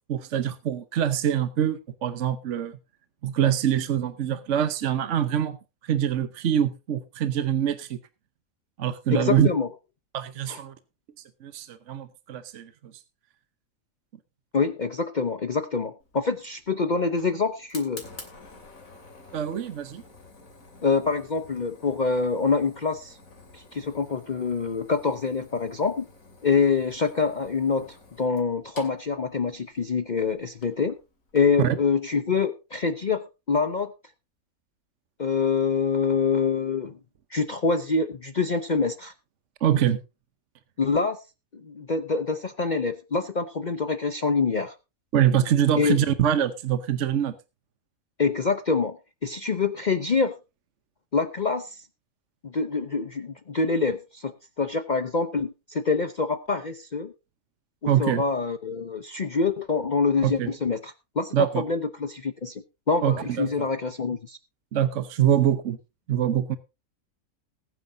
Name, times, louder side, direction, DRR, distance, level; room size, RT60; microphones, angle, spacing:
voice 1, 0.1-2.8 3.2-5.6 5.8-8.0 8.8-9.5 10.1-10.7 11.4-12.7 19.3-20.0 31.6-31.8 39.6-40.0 45.1-47.3 57.9-58.2 60.2-60.5 61.3-61.6 63.0-63.7 64.7-65.8 66.1-66.6, right 10 dB, 60° right, 12 dB, 1.2 m, -24 dB
voice 2, 9.1-9.7 10.5-10.6 14.5-18.0 20.8-23.2 23.5-26.1 26.4-31.0 31.3-33.9 35.2-36.9 37.3-39.1 40.8-41.2 41.5-44.7 45.8-46.0 48.2-49.0 49.2-50.3 51.1-51.8 52.4-57.1 57.8-64.4, left 4 dB, 40° left, 10 dB, 0.8 m, -26 dB
Fire, 16.0-31.7, left 3 dB, 75° left, 3.2 m, -50 dB
20.5 x 9.4 x 2.7 m, 0.27 s
omnidirectional pair, 1.4 m